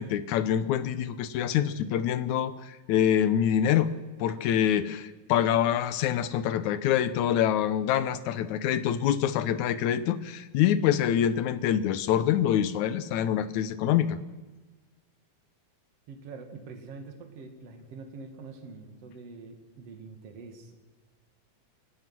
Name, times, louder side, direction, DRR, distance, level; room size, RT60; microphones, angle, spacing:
voice 1, 0.0-3.9 4.2-14.2, left 10 dB, 75° left, 14 dB, 2.1 m, -25 dB
voice 2, 16.1-20.8, right 4 dB, 55° right, 4 dB, 2.9 m, -45 dB
29.0 x 15.5 x 6.1 m, 1.2 s
omnidirectional pair, 3.5 m